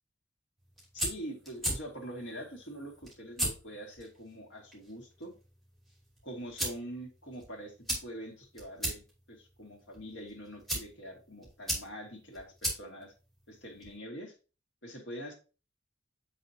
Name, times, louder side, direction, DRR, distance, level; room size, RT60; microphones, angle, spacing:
sound 1, 0.6-14.0, right 1 dB, ahead, 2.9 m, -40 dB
voice 1, 0.9-5.3 6.2-7.7 8.0-13.1 13.5-14.3 14.8-15.3, equal, 75° left, 0 dB, 2.3 m, -44 dB
7.4 x 6.0 x 2.8 m, 0.33 s
head